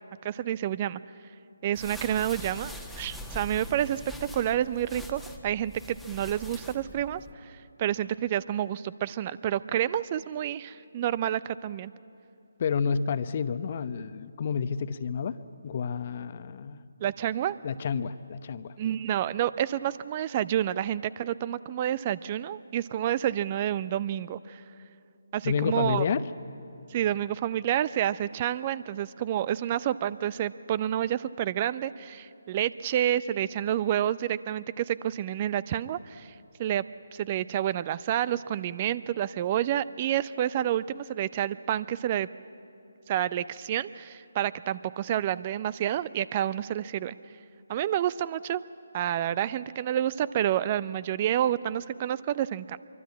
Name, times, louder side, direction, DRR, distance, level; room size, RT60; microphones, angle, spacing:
voice 1, 0.2-1.0 1.6-4.0 4.3-11.9 17.0-17.6 18.8-24.6 25.3-26.1 26.9-36.3 36.6-36.8 37.1-42.3 43.1-47.1 47.7-48.6 48.9-52.8, right 11 dB, 30° right, 18 dB, 0.5 m, -29 dB
sound 1, 1.7-7.3, left 1 dB, ahead, 1.4 m, -43 dB
voice 2, 12.6-15.4 15.6-16.8 17.6-18.8 25.4-26.3, left 6 dB, 40° left, 13 dB, 0.8 m, -29 dB
25.0 x 23.5 x 8.5 m, 2.6 s
figure-of-eight pair, 150°, 0 cm